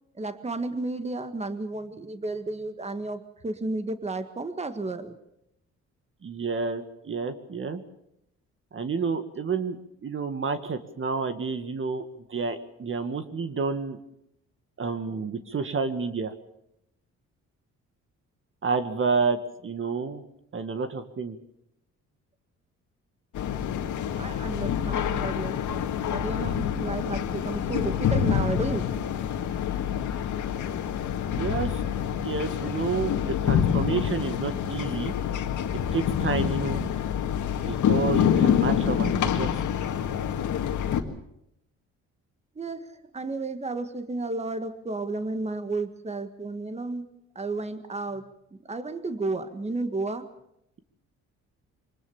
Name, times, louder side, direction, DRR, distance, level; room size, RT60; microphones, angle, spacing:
voice 1, 0.1-5.2 24.2-28.9 42.6-47.1 47.4-48.3 48.7-50.3, right 2 dB, 20° right, 9 dB, 1.7 m, -32 dB
voice 2, 6.2-7.8 8.7-14.0 14.8-16.3 18.6-19.4 19.6-20.2 20.5-21.4 31.3-31.8 32.2-33.1 33.4-35.1 35.9-36.8 37.7-39.5, right 4 dB, 45° right, 9 dB, 1.8 m, -29 dB
sound 1, 23.3-41.0, left 9 dB, 75° left, 2.0 m, -27 dB
24.5 x 20.0 x 7.2 m, 0.80 s
cardioid pair, 90°, 30 cm